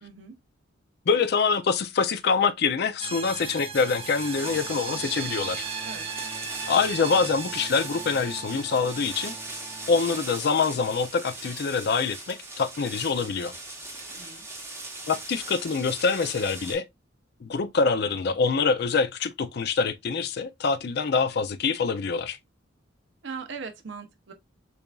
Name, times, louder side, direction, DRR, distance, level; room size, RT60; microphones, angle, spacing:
voice 1, 0.0-0.3 5.8-6.1 14.1-14.4 23.2-24.3, right 5 dB, 65° right, 0.7 m, -39 dB
voice 2, 1.1-5.6 6.7-9.4 9.9-13.5 15.1-16.9 17.4-22.4, left 5 dB, 55° left, 0.4 m, -25 dB
sound 1, 3.0-10.2, right 6 dB, 30° right, 0.6 m, -37 dB
sound 2, 3.7-16.7, right 2 dB, 15° right, 1.0 m, -39 dB
6.7 x 2.4 x 2.3 m
head